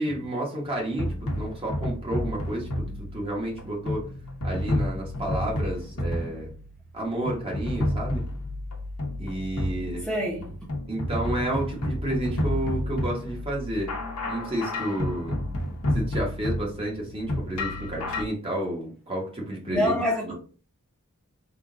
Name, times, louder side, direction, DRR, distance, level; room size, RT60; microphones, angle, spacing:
voice 1, 0.0-4.1 4.4-6.5 6.9-8.2 9.2-10.0 10.9-13.9 14.3-15.4 15.9-19.9 20.2-20.3, right 1 dB, 25° right, 1.2 m, -31 dB
sound 1, 0.6-18.2, left 1 dB, 90° left, 0.9 m, -30 dB
voice 2, 10.0-10.6 19.7-20.3, left 1 dB, 5° left, 0.9 m, -26 dB
3.6 x 2.5 x 3.7 m
head